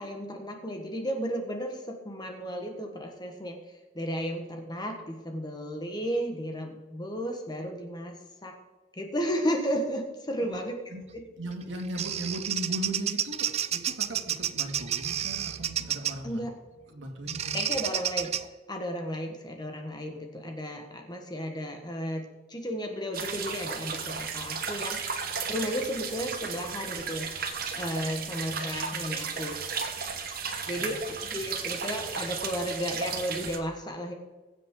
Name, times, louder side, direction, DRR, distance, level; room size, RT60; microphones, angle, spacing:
voice 1, 0.0-3.6 3.9-8.1 8.4-8.6 8.9-10.8 16.2-16.6 17.5-18.3 18.7-25.0 25.5-27.3 27.7-29.6 30.7-34.1, equal, 20° left, 3 dB, 1.4 m, -33 dB
voice 2, 11.4-16.4 16.9-17.6 30.6-31.0 31.4-31.5, right 1 dB, 80° right, 2 dB, 2.4 m, -38 dB
Bird vocalization bird call bird song, 11.5-16.3 17.3-18.4, right 10 dB, 35° right, 0.4 m, -31 dB
sound 1, 23.1-33.6, right 6 dB, 50° right, 1.2 m, -34 dB
21.5 x 7.5 x 3.9 m, 1.2 s
head